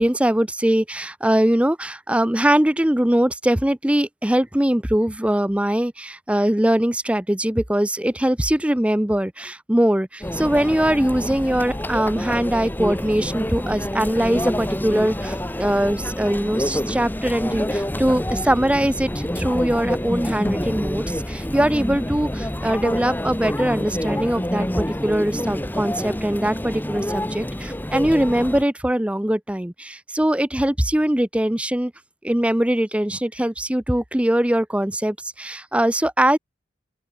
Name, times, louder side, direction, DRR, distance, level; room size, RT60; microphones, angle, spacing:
voice 1, 0.0-31.9 32.2-36.4, right 1 dB, 5° right, 0.6 m, -21 dB
Conversation / Chatter / Crowd, 10.2-28.6, left 1 dB, 10° left, 1.3 m, -27 dB
open air
head